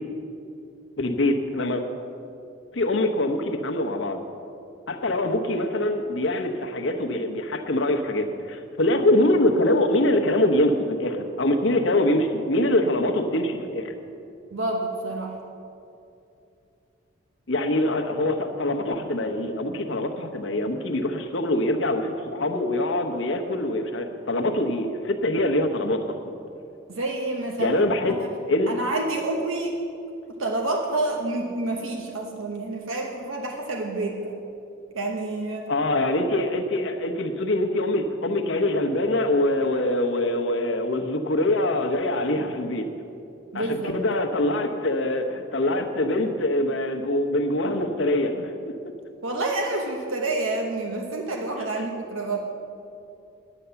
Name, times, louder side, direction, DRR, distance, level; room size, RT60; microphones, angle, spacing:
voice 1, 1.0-1.8 2.7-4.2 4.9-13.9 17.5-26.1 27.6-28.2 28.5-28.7 35.7-42.9 43.5-43.7 43.9-48.7, left 1 dB, 65° left, 5 dB, 1.0 m, -24 dB
voice 2, 14.5-15.4 26.9-28.3 28.7-29.7 30.4-34.4 34.9-35.7 43.5-44.0 49.2-52.4, right 2 dB, 85° right, 1 dB, 1.1 m, -28 dB
9.9 x 9.4 x 6.9 m, 2.7 s
head